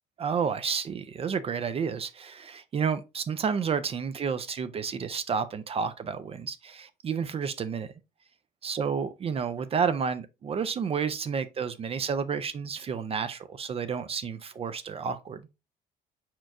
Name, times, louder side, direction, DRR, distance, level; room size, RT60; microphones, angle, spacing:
voice 1, 0.2-7.9 8.6-15.4, right 6 dB, 35° right, 0.4 m, -30 dB
4.6 x 4.4 x 2.5 m
cardioid pair, 110°, 17 cm